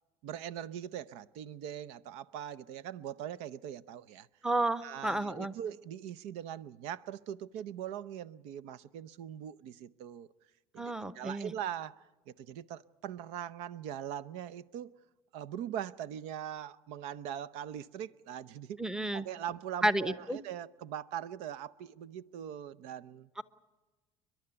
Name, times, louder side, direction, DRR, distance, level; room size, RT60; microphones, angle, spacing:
voice 1, 0.2-4.3 4.8-10.3 10.7-14.9 15.3-18.8 19.1-23.3, right 10 dB, 80° right, 0.7 m, -41 dB
voice 2, 4.4-5.5 10.8-11.5 18.8-19.3 19.8-20.4 23.4-23.5, right 1 dB, 5° right, 0.8 m, -31 dB
29.5 x 11.5 x 9.8 m
cardioid pair, 125°, 11 cm